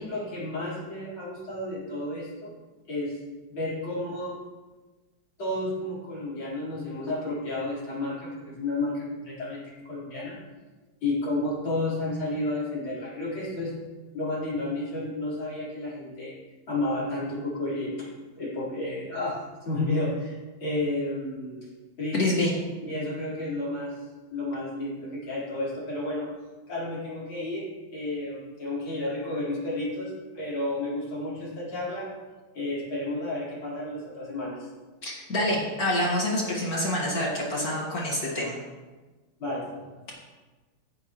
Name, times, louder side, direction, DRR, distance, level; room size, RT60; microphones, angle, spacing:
voice 1, 0.1-2.5 2.9-3.2 3.5-4.4 5.4-10.4 11.0-13.7 14.1-16.3 16.7-18.1 18.4-21.7 22.0-22.2 22.8-23.9 24.3-26.3 26.7-27.7 27.9-32.1 32.5-34.7 39.4-39.7, left 2 dB, 75° left, -7 dB, 5.4 m, -31 dB
voice 2, 22.1-22.5 35.0-38.6, left 1 dB, 45° left, -3 dB, 2.3 m, -27 dB
15.0 x 9.8 x 3.2 m, 1.3 s
omnidirectional pair, 2.2 m